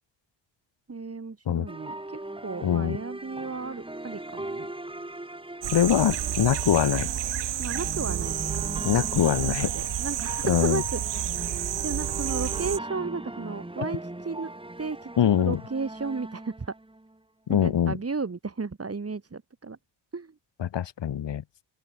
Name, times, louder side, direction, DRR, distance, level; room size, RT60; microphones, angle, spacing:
voice 1, 0.9-4.7 7.6-8.6 9.3-11.2 11.8-14.5 14.8-16.7 17.5-19.8 20.1-20.4, right 4 dB, 30° right, 7.3 m, -34 dB
sound 1, 1.7-17.2, right 1 dB, 10° right, 4.6 m, -39 dB
voice 2, 2.6-3.0 5.7-7.1 8.8-9.7 10.5-10.8 15.2-15.6 17.5-18.0 20.6-21.4, left 10 dB, 65° left, 4.9 m, -23 dB
sound 2, 5.6-12.8, right 11 dB, 65° right, 1.8 m, -30 dB
open air
supercardioid pair, 70°, 46 cm